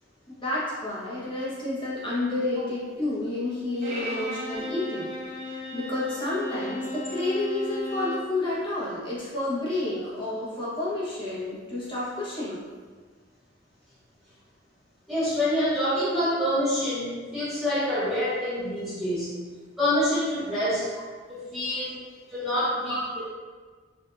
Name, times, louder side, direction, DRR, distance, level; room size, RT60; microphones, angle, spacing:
voice 1, 0.4-5.1 5.5-12.6 21.9-22.2 22.9-23.0, left 2 dB, 25° left, -8 dB, 1.2 m, -30 dB
Bowed string instrument, 3.8-8.3, left 1 dB, 40° right, 0.8 m, -35 dB
voice 2, 15.1-19.3 19.8-20.9 21.3-21.9 22.3-23.0, left 1 dB, ahead, -17 dB, 1.2 m, -26 dB
4.6 x 2.7 x 2.6 m, 1.5 s
head